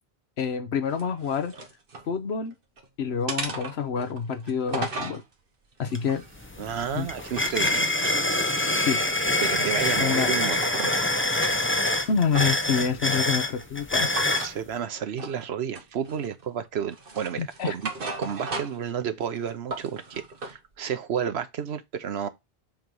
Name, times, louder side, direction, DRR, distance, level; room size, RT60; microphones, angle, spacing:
voice 1, 0.4-1.5 2.1-2.5 3.0-5.2 5.8-6.2 6.9-7.1 8.9-9.0 10.0-10.3 12.1-14.1 17.4-17.7, left 6 dB, 85° left, 1.2 m, -27 dB
sound 1, 0.9-2.1 2.5-2.9 3.3-5.2 5.8-7.6 7.9-9.8 10.2-11.0 11.3-12.7 14.1-14.5 15.2-15.4 15.7-16.5 16.9-18.9 19.2-20.6, right 3 dB, 60° right, 1.4 m, -37 dB
sound 2, 5.9-6.0 6.4-14.5, left 2 dB, 15° left, 0.7 m, -25 dB
voice 2, 6.6-7.9 9.4-10.9 14.4-17.8 18.2-22.3, right 8 dB, 85° right, 1.1 m, -31 dB
7.1 x 3.1 x 5.3 m
omnidirectional pair, 1.1 m